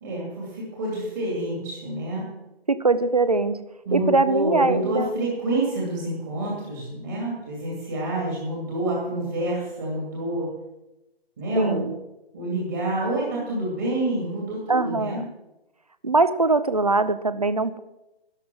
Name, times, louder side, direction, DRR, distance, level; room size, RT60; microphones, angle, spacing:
voice 1, 0.0-2.3 3.9-10.5 11.4-11.9 12.3-15.2, right 1 dB, 20° right, -4 dB, 2.4 m, -28 dB
voice 2, 2.7-3.6 3.9-5.1 11.6-12.0 14.7-15.2 16.0-17.8, right 3 dB, 35° right, 14 dB, 0.6 m, -22 dB
12.5 x 11.5 x 6.2 m, 0.95 s
hypercardioid pair, 175°, 31 cm